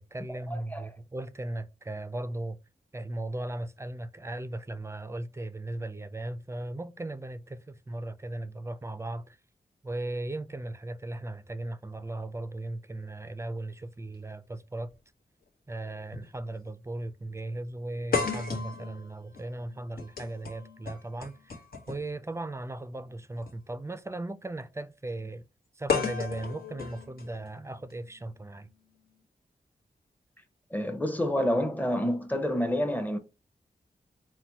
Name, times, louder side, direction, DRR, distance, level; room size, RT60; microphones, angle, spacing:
voice 1, 0.0-2.6 2.9-9.4 9.8-14.9 15.7-21.6 21.9-25.4 25.8-28.7, right 2 dB, 15° right, 0.4 m, -37 dB
voice 2, 0.5-0.9 30.7-33.2, equal, 10° left, 0.8 m, -28 dB
sound 1, 14.9-15.0 16.1-16.3 16.7-16.8 18.1-22.1 23.3-23.5 25.9-27.9, left 6 dB, 70° left, 1.1 m, -34 dB
4.1 x 2.2 x 4.5 m
cardioid pair, 70°, 16 cm